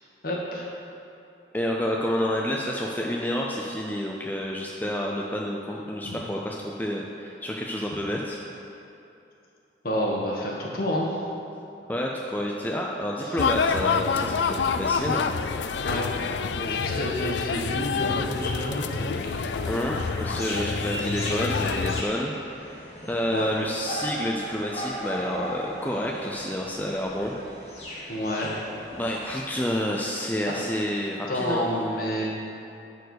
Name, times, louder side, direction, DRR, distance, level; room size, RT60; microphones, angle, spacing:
voice 1, 0.2-0.7 9.8-11.2 13.2-13.4 15.8-16.1 16.5-19.7 23.3-23.5 28.1-28.5 31.3-32.2, equal, 50° left, -2 dB, 1.5 m, -29 dB
voice 2, 1.5-8.4 11.9-15.3 19.7-22.3 22.7-27.4 28.9-31.7, equal, 10° left, -2 dB, 0.5 m, -29 dB
sound 1, 13.4-22.0, left 5 dB, 75° left, 0.4 m, -27 dB
sound 2, 17.6-29.4, equal, 35° left, 1.9 m, -38 dB
11.0 x 4.6 x 6.5 m, 2.8 s
head